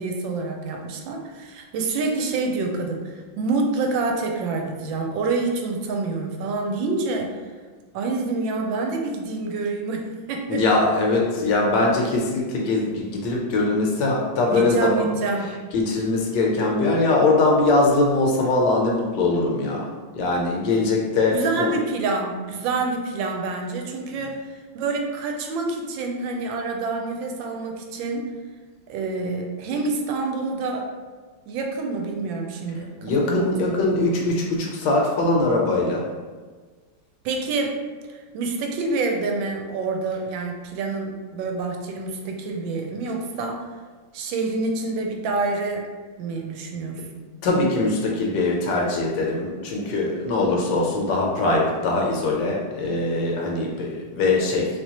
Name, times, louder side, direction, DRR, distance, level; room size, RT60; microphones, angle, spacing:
voice 1, 0.0-7.3 7.9-10.6 14.5-15.5 21.3-24.4 24.7-28.3 28.9-30.9 31.5-33.8 37.2-37.8 38.3-43.6 44.1-45.9 46.2-47.2, right 3 dB, 80° right, 2 dB, 1.3 m, -27 dB
voice 2, 10.5-15.1 15.7-19.9 20.1-21.7 33.0-36.0 47.4-54.7, left 2 dB, 75° left, -1 dB, 1.2 m, -22 dB
3.3 x 3.0 x 2.8 m, 1.5 s
omnidirectional pair, 2.1 m